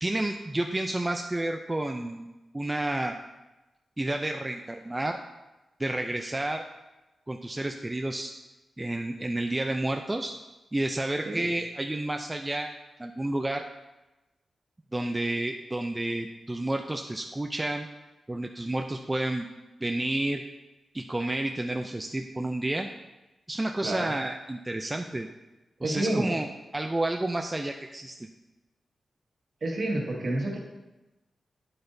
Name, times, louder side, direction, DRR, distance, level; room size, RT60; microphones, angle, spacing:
voice 1, 0.0-2.3 2.5-3.1 4.0-5.2 5.8-6.6 7.3-8.3 8.8-10.3 10.7-12.7 13.0-13.6 14.9-17.9 18.3-19.5 19.8-20.4 20.9-22.9 23.5-25.3 25.8-26.5 26.7-28.2, right 1 dB, 15° right, 4 dB, 0.3 m, -30 dB
voice 2, 23.8-24.1 25.8-26.4 29.6-30.6, right 1 dB, 50° right, -1 dB, 1.6 m, -29 dB
8.8 x 8.0 x 2.6 m, 1.0 s
wide cardioid pair, 135°, 0 cm